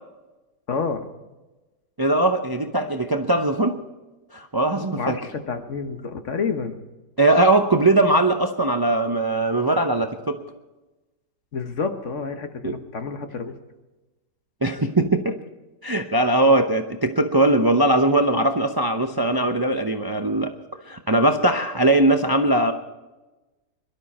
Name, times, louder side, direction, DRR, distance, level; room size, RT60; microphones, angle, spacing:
voice 1, 0.7-1.1 5.0-6.7 11.5-13.5, left 5 dB, 50° left, 7 dB, 1.4 m, -29 dB
voice 2, 2.0-3.8 4.3-5.2 7.2-10.4 12.6-12.8 14.6-15.4 15.8-20.5 20.9-22.7, right 2 dB, 25° right, 6 dB, 0.5 m, -20 dB
22.5 x 12.5 x 4.3 m, 1.1 s
omnidirectional pair, 1.8 m